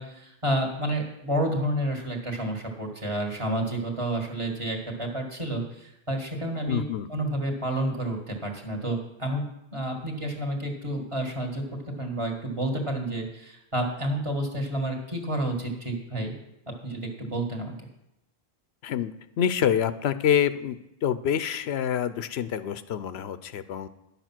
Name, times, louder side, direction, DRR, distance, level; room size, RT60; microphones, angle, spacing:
voice 1, 0.0-6.8 7.1-9.5 9.7-11.6 12.0-16.4 16.8-17.7, right 1 dB, 30° right, 0 dB, 1.8 m, -30 dB
voice 2, 6.7-7.1 18.8-23.9, left 9 dB, 90° left, 13 dB, 0.9 m, -27 dB
10.5 x 6.9 x 6.0 m, 0.89 s
omnidirectional pair, 1.0 m